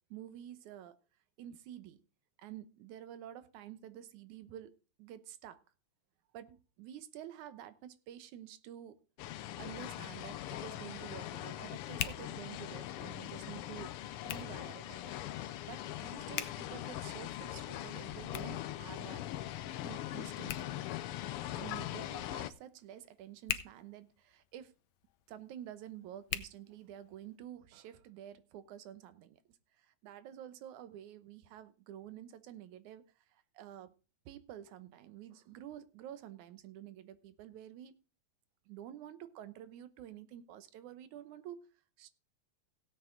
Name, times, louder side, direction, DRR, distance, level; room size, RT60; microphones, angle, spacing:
voice 1, 0.1-1.0 1.4-2.0 2.4-4.7 5.0-5.6 6.3-9.0 9.6-15.2 15.6-19.3 19.8-20.8 21.5-24.7 25.3-33.9 34.3-37.9 38.7-41.6 42.0-42.1, right 11 dB, 85° right, 2.4 m, -49 dB
sound 1, 9.2-22.5, left 13 dB, 90° left, 1.2 m, -41 dB
Hands, 9.7-27.4, left 12 dB, 70° left, 1.9 m, -47 dB
16.5 x 8.2 x 3.8 m
omnidirectional pair, 3.3 m